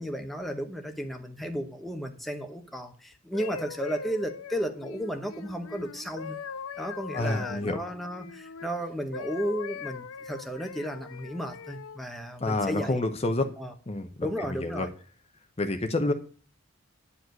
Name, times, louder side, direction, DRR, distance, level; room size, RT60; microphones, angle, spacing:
voice 1, 0.0-6.4 6.8-13.0 13.6-13.7 14.2-14.9, equal, ahead, 1.0 m, -34 dB
sound 1, 3.1-8.7 9.1-12.0 12.6-12.9, left 6 dB, 70° left, 0.5 m, -41 dB
voice 2, 7.1-7.8 12.4-13.4 13.9-14.3 14.6-14.9 15.6-16.1, left 2 dB, 30° left, 0.8 m, -28 dB
9.9 x 4.9 x 7.7 m
head